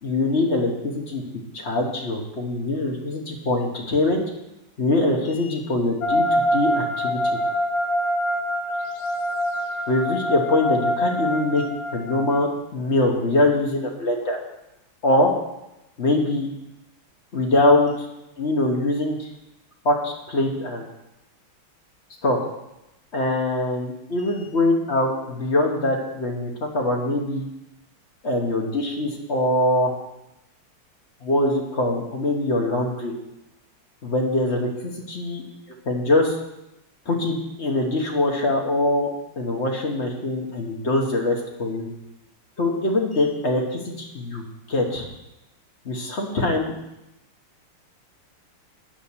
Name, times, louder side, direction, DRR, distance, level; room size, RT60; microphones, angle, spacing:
voice 1, 0.0-1.2 1.5-4.2 4.8-7.2 9.9-11.6 11.9-14.4 15.0-15.3 16.0-16.5 17.3-18.1 18.4-19.3 19.8-20.8 22.2-22.4 23.1-27.4 28.2-29.9 31.2-33.1 34.0-36.4 37.1-39.1 39.4-41.9 42.6-45.1 45.8-46.7, left 2 dB, 40° left, 1 dB, 1.1 m, -23 dB
sound 1, 6.0-12.4, equal, 70° left, 1.4 m, -25 dB
7.7 x 5.5 x 7.1 m, 0.92 s
omnidirectional pair, 2.3 m